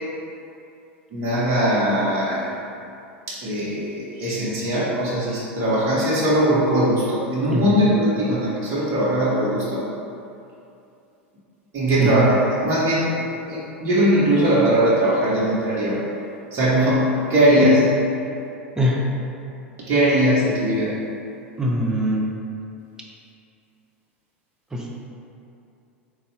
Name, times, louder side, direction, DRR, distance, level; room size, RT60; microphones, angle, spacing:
voice 1, 1.1-2.5 3.3-9.9 11.7-16.1 16.5-17.9 19.9-20.9, right 1 dB, 35° right, -8 dB, 0.9 m, -20 dB
voice 2, 7.5-7.8 12.0-12.3 17.6-17.7 18.8-19.1 21.6-22.3 24.7-24.9, equal, 10° right, -3 dB, 0.5 m, -22 dB
3.9 x 2.3 x 3.2 m, 2.6 s
figure-of-eight pair, 85°, 7 cm